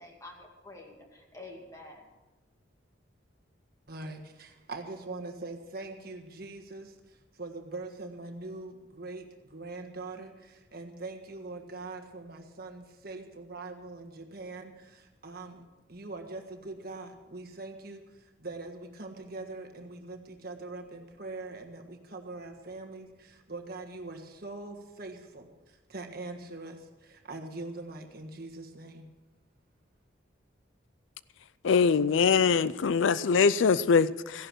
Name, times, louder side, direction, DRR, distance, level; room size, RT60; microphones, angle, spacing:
voice 1, 0.0-2.1, left 2 dB, 15° left, 0 dB, 2.4 m, -48 dB
voice 2, 3.9-29.1, right 2 dB, 50° right, 4 dB, 1.6 m, -42 dB
voice 3, 31.6-34.5, left 5 dB, 70° left, 17 dB, 0.4 m, -23 dB
15.5 x 11.0 x 6.2 m, 1.1 s
head